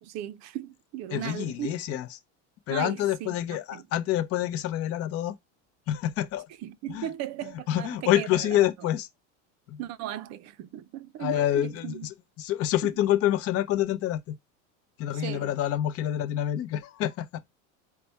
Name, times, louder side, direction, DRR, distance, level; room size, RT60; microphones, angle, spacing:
voice 1, 0.0-1.8 2.7-3.8 6.6-8.7 9.8-12.1 15.1-15.5, right 12 dB, 45° right, 0.5 m, -37 dB
voice 2, 1.1-2.2 2.7-5.4 5.9-6.5 6.9-7.1 7.7-9.1 9.7-9.8 11.2-14.4 15.0-17.4, left 12 dB, 40° left, 0.6 m, -27 dB
4.0 x 2.2 x 4.4 m
supercardioid pair, 135°, 37 cm